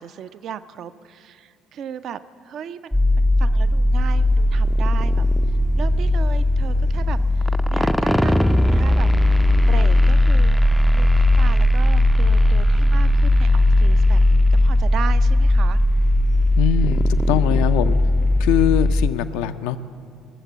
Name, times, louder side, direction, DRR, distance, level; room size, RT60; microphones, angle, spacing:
voice 1, 0.0-5.2 5.8-9.1 9.6-10.6 10.9-15.8, right 8 dB, 50° right, 13 dB, 0.5 m, -36 dB
sound 1, 2.9-19.1, left 1 dB, 5° left, 0.4 m, -17 dB
sound 2, 3.9-17.3, right 5 dB, 70° right, 3.5 m, -40 dB
voice 2, 16.6-18.0 18.4-19.8, left 11 dB, 65° left, 11 dB, 0.4 m, -22 dB
20.0 x 7.2 x 7.0 m, 2.3 s
figure-of-eight pair, 55°, 0 cm